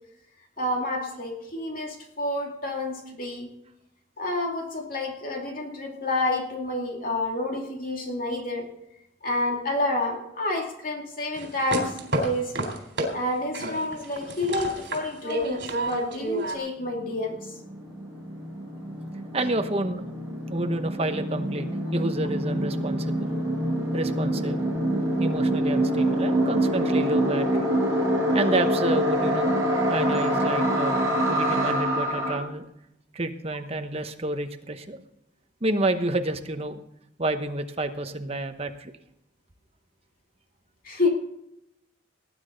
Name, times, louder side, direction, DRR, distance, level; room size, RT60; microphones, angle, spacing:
voice 1, 0.6-3.5 4.2-8.7 9.2-12.5 13.1-17.5 40.8-41.1, left 2 dB, 45° left, 1 dB, 2.6 m, -29 dB
sound 1, 11.3-13.1 13.5-16.6, right 1 dB, 65° right, 3.7 m, -30 dB
sound 2, 16.9-17.0 17.1-32.4, right 1 dB, 15° right, 5.4 m, -25 dB
voice 2, 19.3-20.0 20.5-23.4 23.9-24.6 25.2-27.7 28.3-29.5 29.9-32.7 33.1-35.0 35.6-36.8 37.2-38.9, right 2 dB, 30° right, 7 dB, 1.0 m, -29 dB
19.0 x 9.8 x 4.0 m, 0.81 s
head